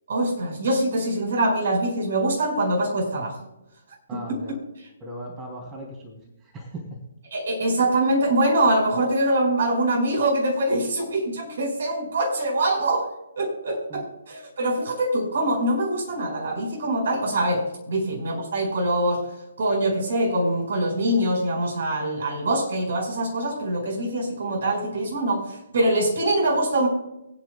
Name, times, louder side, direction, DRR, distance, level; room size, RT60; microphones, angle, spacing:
voice 1, 0.1-3.4 4.1-4.4 7.3-13.1 13.4-19.2 19.6-26.9, right 1 dB, 55° right, 0 dB, 5.2 m, -24 dB
voice 2, 4.1-4.6 5.0-7.0 13.9-14.1, right 1 dB, 20° right, -1 dB, 3.2 m, -38 dB
24.0 x 9.3 x 2.4 m, 0.93 s
figure-of-eight pair, 135°, 0 cm